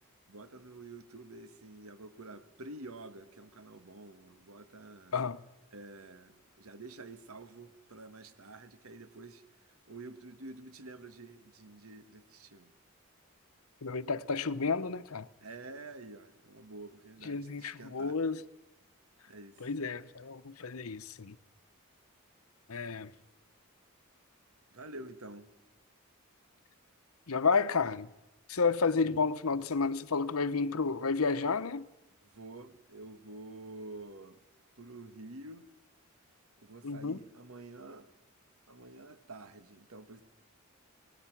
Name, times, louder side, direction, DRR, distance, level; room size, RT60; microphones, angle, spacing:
voice 1, 0.3-5.1 5.7-9.4 9.9-12.7 15.4-18.2 19.3-19.7 24.7-25.5 32.2-34.4 34.8-35.7 36.6-38.1 38.7-40.2, right 2 dB, 80° right, 1.6 m, -49 dB
voice 2, 13.8-15.3 17.2-18.4 19.6-21.4 22.7-23.1 27.3-28.1 28.5-31.8 36.8-37.2, left 4 dB, 80° left, 0.9 m, -31 dB
26.5 x 20.0 x 6.0 m
head